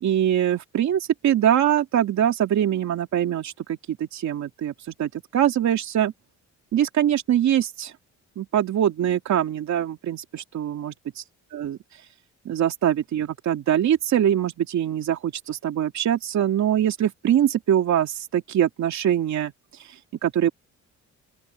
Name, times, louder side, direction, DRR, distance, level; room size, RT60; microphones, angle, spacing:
voice 1, 0.0-6.1 6.7-7.9 8.4-11.2 11.5-12.0 12.4-20.5, right 10 dB, 65° right, 2.6 m, -23 dB
open air
cardioid pair, 90°, 30 cm